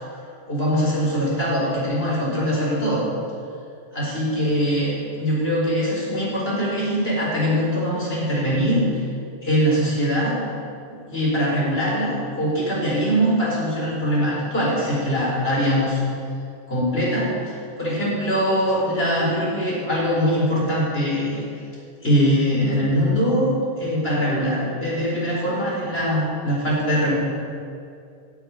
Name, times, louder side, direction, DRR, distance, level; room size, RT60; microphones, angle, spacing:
voice 1, 0.5-3.0 3.9-8.8 9.4-10.4 11.1-16.0 16.7-21.4 22.0-27.2, equal, 65° left, -5 dB, 4.7 m, -22 dB
12.0 x 7.4 x 9.5 m, 2.4 s
omnidirectional pair, 1.1 m